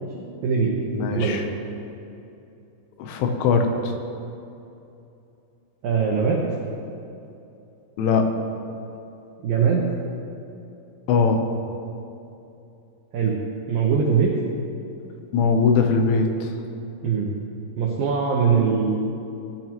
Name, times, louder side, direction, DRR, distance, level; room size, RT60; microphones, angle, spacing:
voice 1, 0.0-0.7 1.1-1.4 5.8-6.4 9.4-9.8 13.1-13.4 13.7-14.3 17.0-17.3 17.8-18.9, right 6 dB, 90° right, -2 dB, 2.0 m, -21 dB
voice 2, 0.9-1.5 3.0-3.9 8.0-8.3 11.1-11.5 15.3-16.5, left 4 dB, 80° left, 4 dB, 3.3 m, -21 dB
17.5 x 10.5 x 3.0 m, 2.8 s
omnidirectional pair, 5.8 m